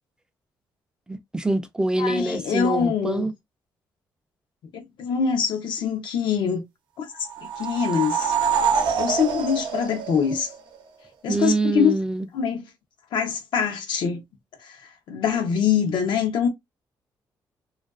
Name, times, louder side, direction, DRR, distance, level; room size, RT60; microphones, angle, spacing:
voice 1, 1.1-3.3 11.3-12.3, right 2 dB, 10° right, 0.3 m, -25 dB
voice 2, 2.0-3.3 4.7-6.6 7.0-7.1 7.6-8.3 9.0-10.5 11.2-11.9 12.3-12.6 13.1-14.2 14.6-14.8 15.1-16.5, left 7 dB, 80° left, 0.6 m, -24 dB
sound 1, 7.2-10.8, right 6 dB, 90° right, 0.6 m, -25 dB
2.4 x 2.2 x 2.3 m
cardioid pair, 125°, 8 cm